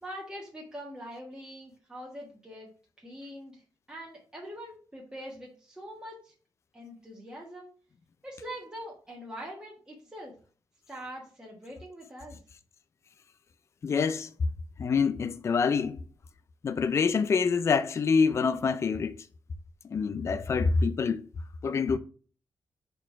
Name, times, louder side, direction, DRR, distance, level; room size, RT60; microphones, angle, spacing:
voice 1, 0.0-2.7 3.0-3.6 3.9-6.3 6.7-7.7 8.2-10.3 10.9-12.4, equal, 10° right, 1.6 m, -43 dB
voice 2, 13.8-14.3 14.8-16.0 16.6-19.2 19.9-21.3 21.6-22.0, left 5 dB, 35° left, 0.4 m, -26 dB
4.6 x 4.3 x 5.7 m
wide cardioid pair, 155°, 8 cm